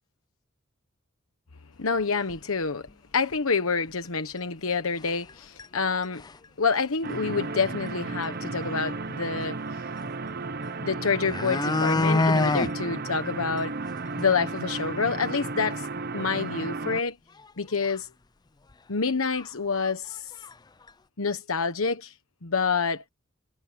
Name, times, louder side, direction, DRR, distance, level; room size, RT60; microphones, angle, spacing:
voice 1, 1.8-6.2 6.6-9.8 10.8-13.8 14.2-17.2 17.6-18.1 18.9-20.3 21.2-22.1 22.4-23.0, left 5 dB, 85° left, 1.2 m, -27 dB
sound 1, 2.3-2.4 2.9-3.0 3.3-3.4 4.4-4.5 5.0-5.3 5.6-5.7 6.0-6.4 7.9-8.0 8.2-8.3 10.6-10.7 11.1-12.7 13.1-13.2 13.6-13.7 14.1-14.2 14.5-14.6 17.4-17.5 17.8-18.0 18.7-18.8 19.3-19.5 19.7-20.5 20.9-21.0, left 2 dB, 20° left, 0.4 m, -26 dB
sound 2, 7.0-17.0, right 3 dB, 50° right, 1.0 m, -34 dB
head